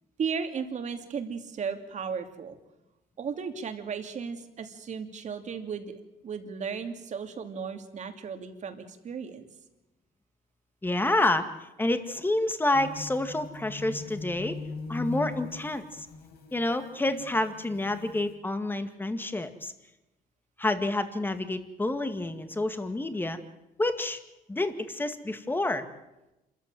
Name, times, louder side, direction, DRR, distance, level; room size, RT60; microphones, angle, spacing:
voice 1, 0.2-2.6 3.2-9.4, right 6 dB, 45° right, 6 dB, 2.8 m, -35 dB
voice 2, 10.8-14.6 14.9-16.1 16.5-19.7 20.6-23.4 23.8-24.2 24.5-25.9, left 2 dB, 10° left, 9 dB, 2.1 m, -28 dB
sound 1, 12.7-18.3, left 3 dB, 70° left, 5.5 m, -41 dB
27.0 x 14.5 x 9.2 m, 0.96 s
cardioid pair, 110°, 17 cm